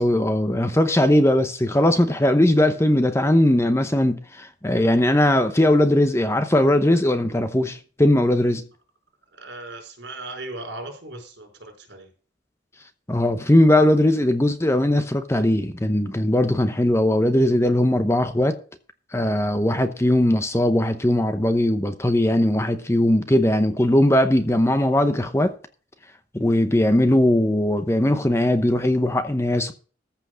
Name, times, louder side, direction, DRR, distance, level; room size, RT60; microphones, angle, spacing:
voice 1, 0.0-8.6 13.1-18.6 19.1-25.5 26.3-29.7, left 1 dB, 15° left, 0.8 m, -19 dB
voice 2, 9.3-12.1 19.2-19.4, right 2 dB, 70° right, 5.2 m, -38 dB
14.5 x 5.9 x 6.3 m
head